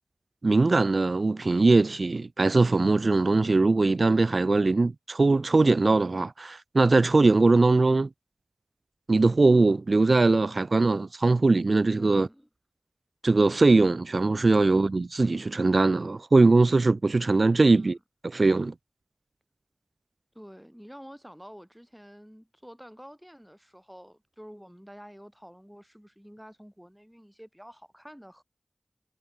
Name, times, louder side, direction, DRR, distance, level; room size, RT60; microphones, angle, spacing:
voice 1, 0.4-8.1 9.1-12.3 13.2-18.0 18.2-18.7, right 3 dB, 80° right, 0.5 m, -21 dB
voice 2, 12.0-12.5 17.6-17.9 20.3-28.4, equal, 5° right, 3.0 m, -48 dB
wide cardioid pair, 40°, 0 cm